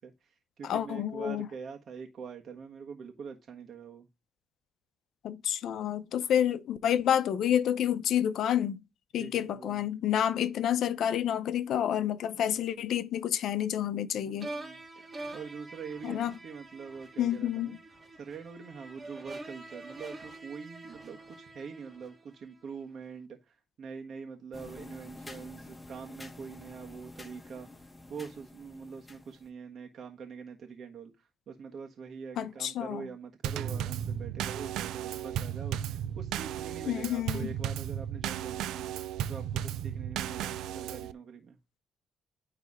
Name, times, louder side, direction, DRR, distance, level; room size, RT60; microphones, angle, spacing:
voice 1, 0.0-4.1 9.2-9.8 12.4-12.6 14.2-17.8 18.2-27.7 28.1-31.1 31.5-38.8 39.3-41.6, right 6 dB, 60° right, 1.4 m, -44 dB
voice 2, 0.6-1.5 5.2-8.8 9.1-14.5 16.0-16.3 17.2-17.7 32.4-33.1 36.9-37.5, left 10 dB, 75° left, 0.8 m, -29 dB
sound 1, 14.4-22.6, right 2 dB, 25° right, 1.7 m, -46 dB
sound 2, 24.5-29.5, left 2 dB, 15° left, 2.4 m, -49 dB
Drum kit / Snare drum / Bass drum, 33.4-41.1, right 10 dB, 85° right, 0.5 m, -35 dB
9.7 x 3.4 x 4.9 m
cardioid pair, 90°, 0 cm